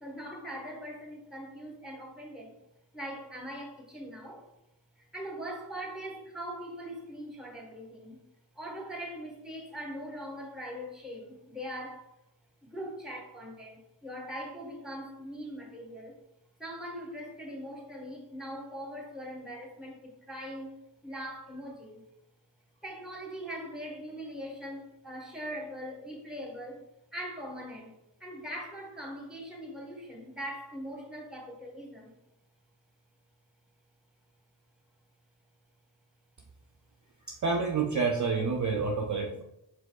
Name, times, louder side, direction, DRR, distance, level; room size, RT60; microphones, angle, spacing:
voice 1, 0.0-2.6 2.9-4.5 5.0-8.2 8.5-12.1 12.6-16.1 16.6-20.7 21.0-22.1 22.8-26.8 27.1-32.2, equal, ahead, 0 dB, 1.3 m, -41 dB
voice 2, 37.3-39.4, right 4 dB, 45° right, 3 dB, 0.4 m, -28 dB
5.0 x 4.0 x 2.3 m, 0.86 s
cardioid pair, 45°, 43 cm